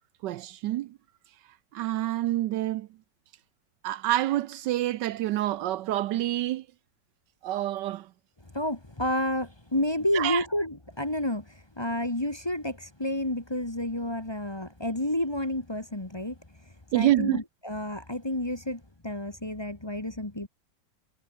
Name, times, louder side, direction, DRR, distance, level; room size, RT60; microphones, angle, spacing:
voice 1, 0.2-1.0 1.7-2.9 3.8-6.7 7.4-8.1 10.1-10.4 16.9-17.4, right 14 dB, 75° right, 1.2 m, -27 dB
voice 2, 8.5-16.4 16.9-20.5, left 1 dB, 15° left, 1.6 m, -30 dB
omnidirectional pair, 2.0 m